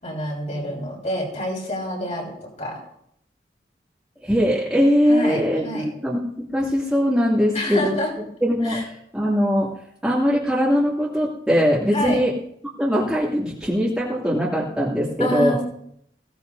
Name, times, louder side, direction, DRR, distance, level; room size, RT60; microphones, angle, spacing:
voice 1, 0.0-2.8 5.1-5.9 7.5-8.1 8.6-8.8 11.9-12.2 15.2-15.6, equal, 40° left, -3 dB, 6.5 m, -27 dB
voice 2, 4.2-7.9 8.4-8.8 9.1-9.7 10.0-12.3 12.8-15.6, equal, 5° right, -7 dB, 2.6 m, -21 dB
22.0 x 17.5 x 2.8 m, 0.73 s
head